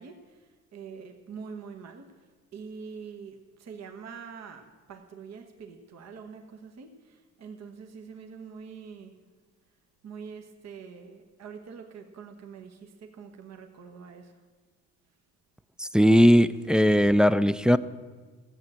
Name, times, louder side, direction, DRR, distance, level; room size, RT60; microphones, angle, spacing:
voice 1, 0.0-2.1 2.5-9.1 10.0-14.3, right 6 dB, 60° right, 4 dB, 1.3 m, -44 dB
voice 2, 15.8-17.8, equal, 5° right, 13 dB, 0.4 m, -19 dB
14.5 x 7.9 x 7.5 m, 1.4 s
cardioid pair, 90°, 30 cm